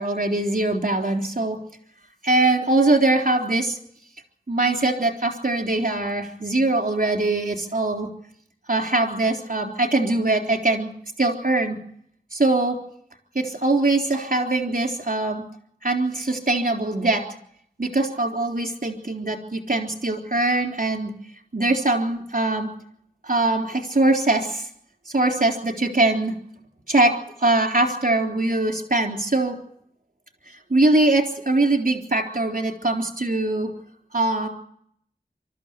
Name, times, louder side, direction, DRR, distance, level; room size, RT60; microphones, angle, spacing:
voice 1, 0.0-1.6 2.2-3.8 4.5-8.1 8.7-10.9 11.2-11.8 12.3-12.8 13.4-15.4 15.8-17.2 17.8-21.1 21.5-22.7 23.2-24.7 25.1-26.3 26.9-27.1 27.4-29.6 30.7-33.7 34.1-34.5, right 2 dB, 55° right, 3 dB, 3.7 m, -22 dB
23.5 x 13.5 x 8.4 m, 0.69 s
wide cardioid pair, 45°, 16 cm